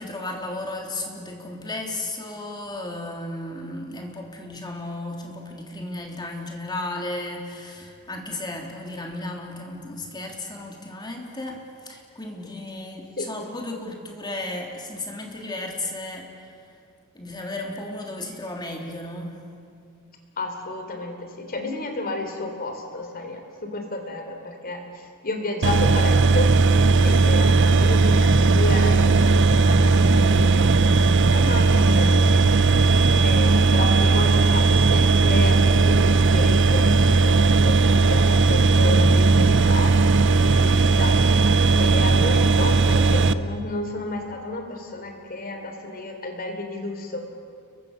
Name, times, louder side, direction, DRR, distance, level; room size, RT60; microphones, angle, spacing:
voice 1, 0.0-16.5 17.1-19.4 27.1-27.4, left 2 dB, 20° left, 0 dB, 3.4 m, -34 dB
voice 2, 20.4-26.5 27.0-32.9 33.2-47.2, left 2 dB, 40° left, 4 dB, 3.5 m, -32 dB
sound 1, 25.6-43.3, right 3 dB, 55° right, 0.8 m, -17 dB
30.0 x 23.5 x 6.8 m, 2.3 s
head